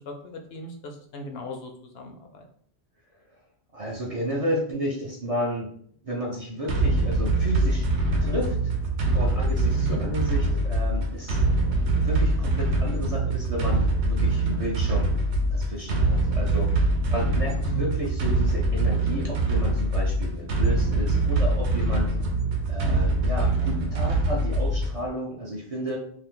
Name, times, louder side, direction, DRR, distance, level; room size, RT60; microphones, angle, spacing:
voice 1, 0.1-2.5 9.7-10.0 17.6-18.0, equal, 70° left, 4 dB, 0.8 m, -36 dB
voice 2, 3.7-5.7 6.0-7.9 8.2-8.7 9.1-11.4 11.9-16.8 17.1-22.1 22.7-26.0, equal, 40° right, -3 dB, 0.6 m, -32 dB
sound 1, 6.7-25.1, right 2 dB, 80° right, 0.9 m, -24 dB
2.6 x 2.5 x 3.6 m, 0.62 s
omnidirectional pair, 1.1 m